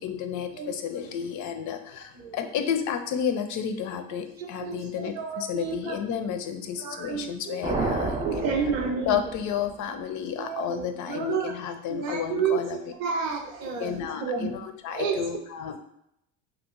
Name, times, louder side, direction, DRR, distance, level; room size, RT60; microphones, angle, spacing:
voice 1, 0.0-8.5 9.1-12.9 13.8-15.8, left 8 dB, 50° left, 7 dB, 0.5 m, -31 dB
voice 2, 2.2-2.7 4.6-5.9 6.8-7.6 8.2-9.2 10.4-11.5 11.9-12.6 13.0-14.5 14.9-15.2, right 6 dB, 80° right, 2 dB, 0.7 m, -30 dB
sound 1, 7.6-9.9, right 3 dB, 15° right, 0.4 m, -31 dB
2.8 x 2.3 x 3.7 m, 0.78 s
hypercardioid pair, 70°, 39 cm